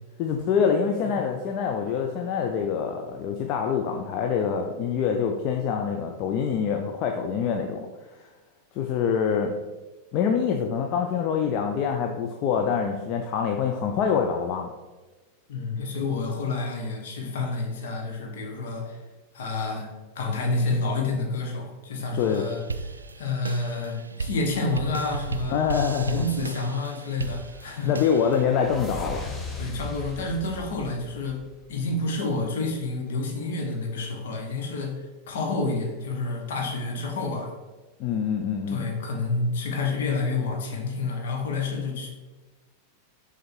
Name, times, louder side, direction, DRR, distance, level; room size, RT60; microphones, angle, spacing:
voice 1, 0.2-7.9 8.8-9.6 10.1-14.7 22.2-22.5 25.5-26.3 27.8-29.2 38.0-38.9, left 7 dB, 40° left, 3 dB, 0.5 m, -25 dB
voice 2, 15.5-19.0 19.3-19.9 20.1-22.6 23.2-25.6 26.1-27.9 29.6-34.9 35.3-37.5 38.7-42.1, left 3 dB, 60° left, 1 dB, 1.3 m, -29 dB
sound 1, 22.2-28.4, right 4 dB, 75° right, 0.3 m, -35 dB
sound 2, 27.0-32.0, left 3 dB, 20° left, 0.9 m, -39 dB
6.5 x 3.7 x 4.4 m, 1.2 s
figure-of-eight pair, 90°, 0 cm